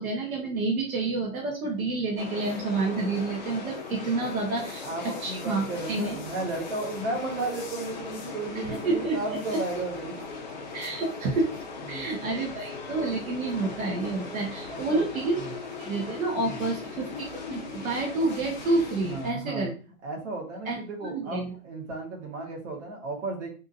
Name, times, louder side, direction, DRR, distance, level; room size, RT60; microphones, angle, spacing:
voice 1, 0.0-6.2 8.5-9.2 10.7-11.5 11.9-15.4 15.8-19.7 20.6-21.5, right 3 dB, 70° right, -2 dB, 1.3 m, -29 dB
sound 1, 2.2-19.3, left 4 dB, 35° left, 0.5 m, -39 dB
voice 2, 4.5-10.1 11.9-12.1 14.7-15.1 15.4-15.5 16.4-16.7 19.0-19.7 20.0-23.5, right 2 dB, 50° right, -1 dB, 1.5 m, -34 dB
3.6 x 2.6 x 2.6 m, 0.36 s
hypercardioid pair, 170°, 44 cm